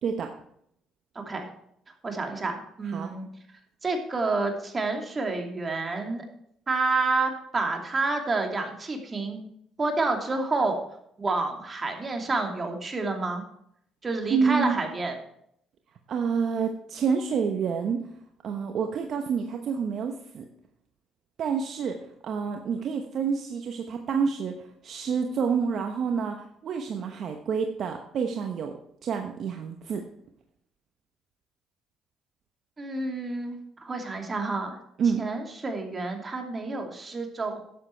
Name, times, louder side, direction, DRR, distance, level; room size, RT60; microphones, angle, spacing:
voice 1, 1.1-1.5 2.0-3.3 3.8-6.2 6.7-9.4 9.8-10.8 11.2-13.4 14.0-15.1 32.8-34.8 35.2-37.6, right 3 dB, 30° right, 4 dB, 2.6 m, -29 dB
voice 2, 14.3-14.8 16.1-18.0 18.4-20.5 21.4-22.0 22.2-24.5 24.8-26.4 26.6-28.7 29.0-30.0 35.0-35.2, right 6 dB, 60° right, 4 dB, 1.0 m, -28 dB
11.5 x 7.6 x 4.5 m, 0.70 s
supercardioid pair, 80°, 0 cm